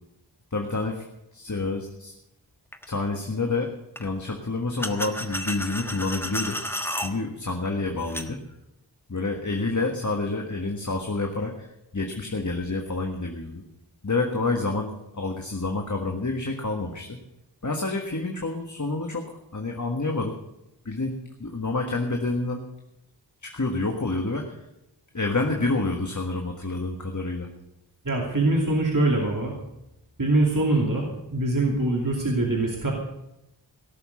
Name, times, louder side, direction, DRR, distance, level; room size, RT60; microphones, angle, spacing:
voice 1, 0.5-1.0 1.3-2.1 2.9-6.6 7.0-8.4 9.1-13.6 14.0-17.2 17.6-20.4 20.8-22.6 23.4-24.7 25.1-27.5, left 3 dB, 45° left, 3 dB, 1.6 m, -28 dB
sound 1, 2.7-2.9 4.0-4.1 4.8-7.1 8.0-8.3, left 1 dB, 5° left, 1.3 m, -32 dB
voice 2, 28.0-29.6 30.2-32.9, right 2 dB, 45° right, -1 dB, 2.8 m, -23 dB
17.5 x 7.1 x 8.5 m, 0.90 s
wide cardioid pair, 55°, 42 cm